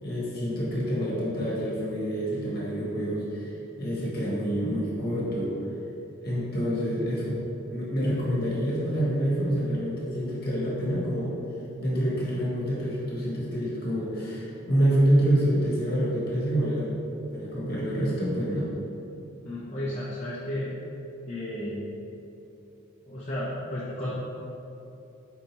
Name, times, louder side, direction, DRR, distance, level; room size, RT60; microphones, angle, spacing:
voice 1, 0.0-5.5 6.2-7.4 7.7-11.3 11.8-16.9 17.3-18.7, equal, 45° left, -6 dB, 1.1 m, -27 dB
voice 2, 19.4-20.7 21.3-21.8 23.1-24.1, left 1 dB, 30° left, -9 dB, 0.5 m, -33 dB
4.5 x 2.8 x 4.0 m, 2.9 s
head